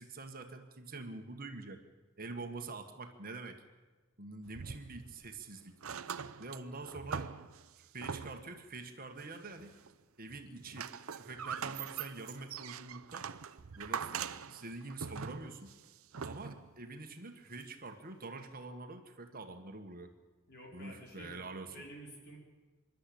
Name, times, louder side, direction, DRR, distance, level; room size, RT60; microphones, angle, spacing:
voice 1, 0.0-1.8 2.2-3.6 4.2-5.7 6.4-7.3 7.9-9.8 10.2-10.9 11.1-13.3 13.8-14.1 14.5-15.7 16.2-20.1 20.7-21.8, right 3 dB, 40° right, 5 dB, 1.6 m, -45 dB
sound 1, 4.4-5.4 5.7-8.6 9.2-9.9 10.3-16.8 17.6-17.7, right 7 dB, 70° right, 0.7 m, -43 dB
voice 2, 20.5-21.4 21.7-22.4, equal, 50° left, 0 dB, 4.9 m, -50 dB
26.0 x 12.0 x 8.6 m, 1.3 s
head